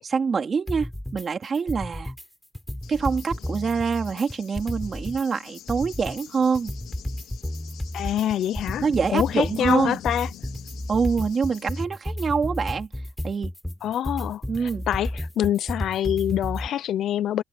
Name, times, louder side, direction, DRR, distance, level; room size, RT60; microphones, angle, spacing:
voice 1, 0.0-2.1 2.9-6.7 8.8-10.0 10.9-12.9 13.2-13.5 14.5-14.9, right 5 dB, 40° right, 3.5 m, -25 dB
sound 1, 0.7-1.3 1.5-2.3 2.5-5.3 5.5-16.7, left 1 dB, 5° left, 7.2 m, -32 dB
Cricket / Thunder, 2.8-11.8, left 13 dB, 90° left, 3.6 m, -44 dB
voice 2, 7.9-8.8 9.1-10.3 13.8-17.4, left 11 dB, 70° left, 0.5 m, -25 dB
cardioid pair, 90°, 0 cm